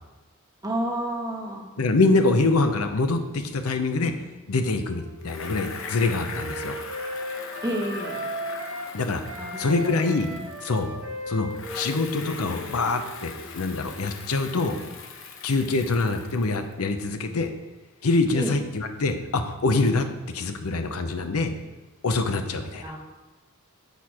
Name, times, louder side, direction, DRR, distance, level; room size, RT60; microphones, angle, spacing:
voice 1, 0.6-1.7 7.6-8.2 9.4-10.2 18.4-18.5 22.8-23.0, right 1 dB, 15° right, 0 dB, 1.1 m, -30 dB
voice 2, 1.8-4.1 4.5-6.8 8.9-9.2 9.6-10.3 10.6-10.9 11.3-11.5 11.7-14.7 15.4-17.5 18.0-20.0 20.3-21.5 22.0-22.8, left 3 dB, 85° left, 7 dB, 0.7 m, -24 dB
Wind instrument woodwind instrument, 4.6-9.0 9.3-13.8, equal, 80° right, 1.6 m, -37 dB
Bicycle, 5.2-11.1 11.5-16.7, left 5 dB, 60° left, 1.0 m, -40 dB
8.1 x 4.4 x 4.8 m, 1.2 s
head